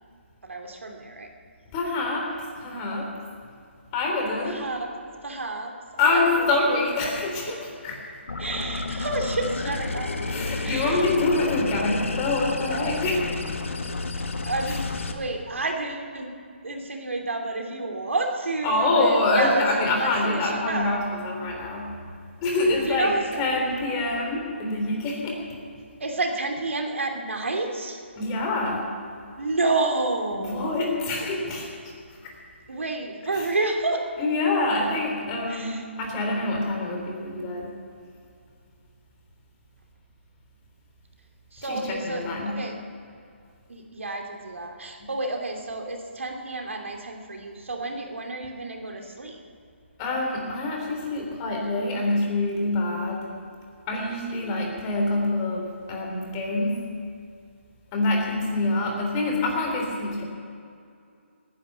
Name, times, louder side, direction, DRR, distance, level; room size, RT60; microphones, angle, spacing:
voice 1, 0.4-1.3 4.4-4.9 5.2-6.5 8.4-11.0 13.9-14.0 14.5-16.3 16.6-19.6 20.0-21.0 22.8-23.4 26.0-28.0 29.4-30.7 32.7-34.1 35.5-35.8 41.5-42.8 43.7-49.4, right 2 dB, 85° right, 2 dB, 2.8 m, -30 dB
voice 2, 1.7-2.2 2.6-3.1 3.9-4.6 6.0-8.0 10.3-13.4 14.7-14.8 18.6-21.9 22.4-25.4 28.2-28.9 30.3-31.7 33.3-33.5 34.2-37.7 41.7-42.6 45.0-45.1 50.0-53.2 53.9-56.8 57.9-60.2, left 2 dB, 25° left, 0 dB, 3.6 m, -25 dB
sound 1, 8.3-15.1, left 3 dB, 85° left, 1.6 m, -31 dB
18.5 x 10.5 x 7.0 m, 2.4 s
hypercardioid pair, 150°, 7 cm